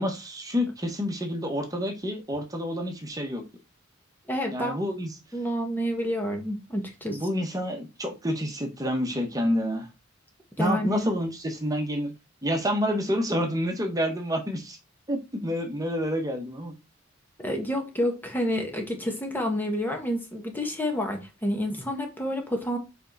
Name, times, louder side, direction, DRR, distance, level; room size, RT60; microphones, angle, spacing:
voice 1, 0.0-3.4 4.5-5.1 7.1-9.9 10.6-12.1 12.4-14.8 15.1-16.7, equal, 20° right, 1.4 m, -28 dB
voice 2, 4.3-4.8 5.3-7.3 10.6-11.1 17.4-22.8, equal, 10° left, 1.3 m, -29 dB
7.4 x 4.6 x 4.1 m
head